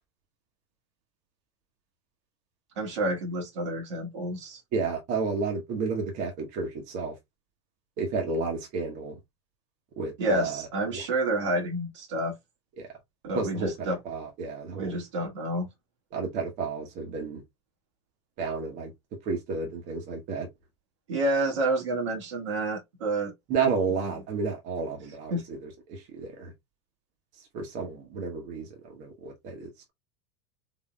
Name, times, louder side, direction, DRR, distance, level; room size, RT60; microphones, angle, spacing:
voice 1, 2.8-4.6 10.2-12.3 13.2-14.0 14.7-15.7 21.1-23.3 24.0-24.1 25.3-25.4, right 1 dB, 80° right, 1.7 m, -29 dB
voice 2, 4.7-7.1 8.0-9.2 10.0-11.0 13.3-15.0 16.1-17.4 18.4-18.9 19.2-20.5 23.5-26.5 27.5-29.7, right 4 dB, 55° right, 1.3 m, -31 dB
3.8 x 3.4 x 2.3 m
hypercardioid pair, 100°, 15 cm